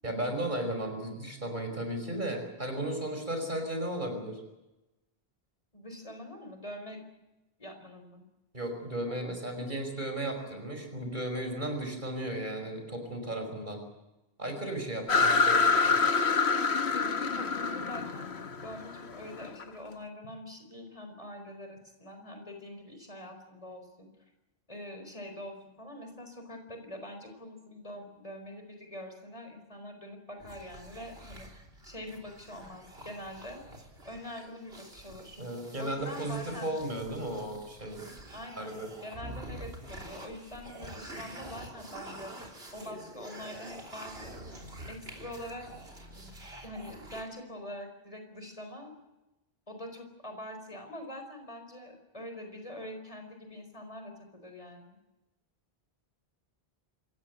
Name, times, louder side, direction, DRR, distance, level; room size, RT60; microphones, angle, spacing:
voice 1, 0.0-4.4 8.5-13.8 14.4-16.0 35.4-38.0 38.6-38.9, right 1 dB, 50° right, 5 dB, 5.4 m, -35 dB
voice 2, 5.7-7.0 7.6-8.2 14.9-15.5 16.9-18.3 18.6-24.1 24.7-33.6 34.0-35.4 35.8-36.7 38.3-42.3 42.7-44.6 44.9-45.7 46.1-48.9 49.7-55.0, left 1 dB, 35° left, 5 dB, 4.5 m, -44 dB
sound 1, 15.1-19.6, left 4 dB, 85° left, 1.5 m, -26 dB
sound 2, 30.4-47.2, right 1 dB, 75° right, 3.6 m, -47 dB
26.5 x 15.5 x 9.5 m, 0.99 s
omnidirectional pair, 1.1 m